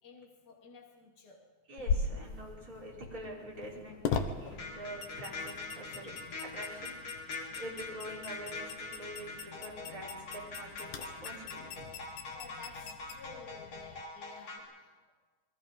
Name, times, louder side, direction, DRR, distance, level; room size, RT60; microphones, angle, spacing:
voice 1, 0.0-1.4 12.3-15.1, left 4 dB, 35° left, -2 dB, 3.6 m, -53 dB
voice 2, 1.7-6.2 6.4-6.9 7.6-11.9, right 1 dB, 30° right, -4 dB, 5.3 m, -46 dB
sound 1, 1.8-14.0, left 5 dB, 85° left, 2.7 m, -40 dB
sound 2, 4.5-14.6, left 3 dB, 55° left, 4.9 m, -43 dB
28.5 x 22.5 x 5.4 m, 1.4 s
omnidirectional pair, 3.3 m